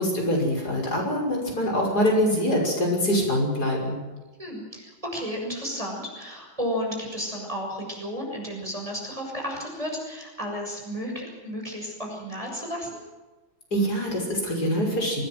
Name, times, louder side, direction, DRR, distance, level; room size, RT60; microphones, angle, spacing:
voice 1, 0.0-4.0 13.7-15.2, equal, 50° left, -1 dB, 6.7 m, -24 dB
voice 2, 4.4-12.9, equal, 15° right, -1 dB, 6.8 m, -33 dB
25.0 x 18.5 x 7.8 m, 1.2 s
omnidirectional pair, 2.1 m